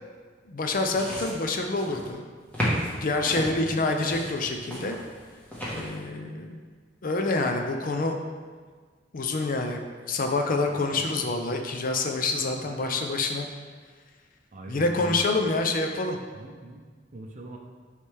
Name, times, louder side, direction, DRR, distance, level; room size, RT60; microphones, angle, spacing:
voice 1, 0.5-2.2 3.0-5.0 5.7-6.6 7.0-8.2 9.1-9.8 10.1-13.5 14.7-16.2, left 3 dB, 50° left, 4 dB, 0.5 m, -27 dB
sound 1, 0.7-2.1 2.5-3.5 4.0-6.0, equal, 10° left, 1.4 m, -33 dB
voice 2, 3.3-3.9 10.7-11.1 12.3-13.0 14.5-15.3 16.3-16.8 17.1-17.6, right 1 dB, 45° right, 0 dB, 0.6 m, -41 dB
9.6 x 3.3 x 3.4 m, 1.6 s
head